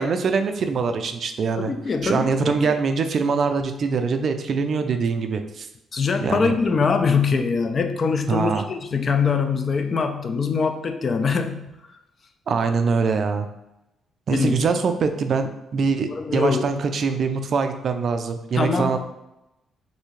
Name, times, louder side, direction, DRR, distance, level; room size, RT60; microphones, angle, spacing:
voice 1, 0.0-1.7 2.0-5.7 6.2-6.6 8.3-8.6 12.5-13.5 14.3-19.0, right 5 dB, 55° right, 7 dB, 0.3 m, -23 dB
voice 2, 1.6-2.3 5.9-11.7 14.3-14.5 16.1-16.6 18.5-18.9, left 5 dB, 45° left, 7 dB, 0.3 m, -22 dB
3.2 x 2.6 x 3.1 m, 0.91 s
cardioid pair, 90°, 0 cm